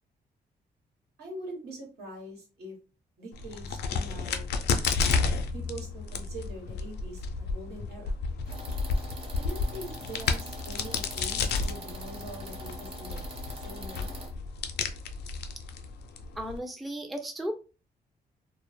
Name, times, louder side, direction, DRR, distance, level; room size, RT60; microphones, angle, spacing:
voice 1, 1.2-2.8 3.2-4.5 5.5-8.2 9.3-13.2 13.5-14.1, right 1 dB, 80° right, -1 dB, 1.1 m, -43 dB
Crack, 3.3-16.6, left 4 dB, 90° left, 0.4 m, -32 dB
sound 1, 8.5-14.3, equal, 35° right, 0.8 m, -43 dB
voice 2, 16.4-17.5, right 1 dB, ahead, 5 dB, 0.3 m, -35 dB
2.1 x 2.0 x 3.0 m, 0.32 s
cardioid pair, 95°, 17 cm